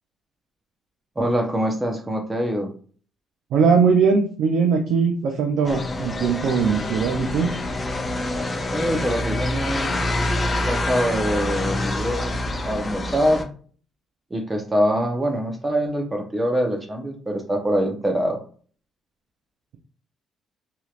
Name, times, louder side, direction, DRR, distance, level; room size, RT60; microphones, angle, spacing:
voice 1, 1.2-2.7 8.7-10.0 10.7-12.4 12.6-13.5 14.3-18.4, equal, 20° right, 2 dB, 0.8 m, -24 dB
voice 2, 3.5-7.5, right 5 dB, 80° right, 3 dB, 0.5 m, -20 dB
sound 1, 5.6-13.4, left 2 dB, 30° left, 0.6 m, -26 dB
3.0 x 2.8 x 2.4 m, 0.43 s
cardioid pair, 90°, 0 cm